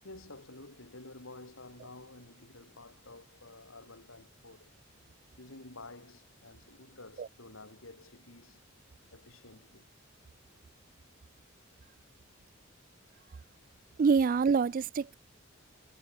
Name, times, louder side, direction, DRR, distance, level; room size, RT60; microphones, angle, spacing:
voice 1, 0.0-4.7 5.4-8.6 9.1-9.9, left 2 dB, 90° left, 4.6 m, -51 dB
voice 2, 14.0-15.1, right 5 dB, 40° right, 0.3 m, -25 dB
head